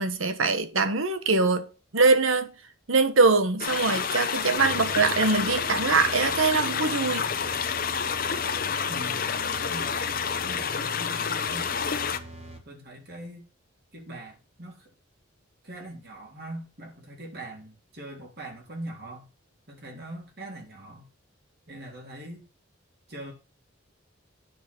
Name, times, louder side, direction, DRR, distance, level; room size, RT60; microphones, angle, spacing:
voice 1, 0.0-1.7 1.9-2.5 2.9-7.2, right 3 dB, 80° right, 1.3 m, -23 dB
sound 1, 3.6-12.2, left 6 dB, 45° left, 0.9 m, -29 dB
sound 2, 4.6-12.6, equal, 30° right, 2.5 m, -43 dB
voice 2, 8.9-12.1 12.6-13.4 13.9-14.9 15.6-19.3 19.7-21.1 21.7-22.4 23.1-23.3, right 1 dB, 50° right, 3.4 m, -42 dB
9.3 x 5.9 x 6.1 m
head